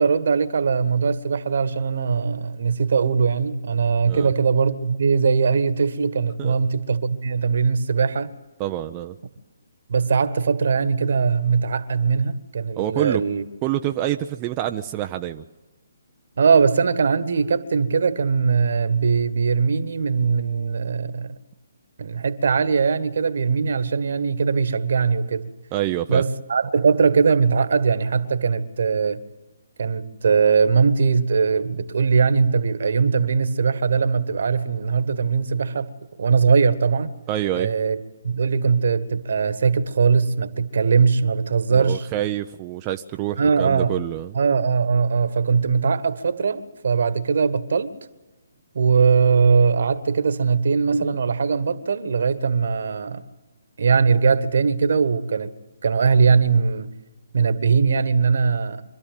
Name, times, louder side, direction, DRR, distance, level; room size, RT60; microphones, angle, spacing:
voice 1, 0.0-8.3 9.9-13.4 16.4-21.3 22.0-25.5 26.1-29.2 29.8-35.9 36.2-37.1 37.6-38.0 38.2-42.1 43.4-43.9 44.3-47.9 48.7-53.2 53.8-55.5 55.8-56.9 57.3-58.8, right 5 dB, 65° right, 1.5 m, -20 dB
voice 2, 8.6-9.2 12.8-13.2 13.6-15.4 25.7-26.2 37.3-37.7 41.7-44.3, right 13 dB, 25° right, 0.6 m, -26 dB
25.5 x 12.5 x 9.2 m
hypercardioid pair, 145°, 0 cm